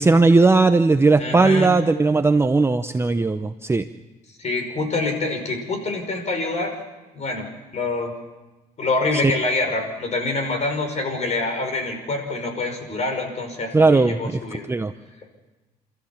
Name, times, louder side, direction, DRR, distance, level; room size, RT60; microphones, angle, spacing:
voice 1, 0.0-3.8 9.2-9.3 13.7-14.4 14.7-14.9, right 3 dB, 15° right, 9 dB, 0.7 m, -17 dB
voice 2, 1.2-1.7 4.4-6.7 7.1-8.1 8.8-14.7, left 3 dB, 40° left, 4 dB, 5.6 m, -26 dB
29.5 x 14.0 x 7.3 m, 1.1 s
cardioid pair, 110°, 17 cm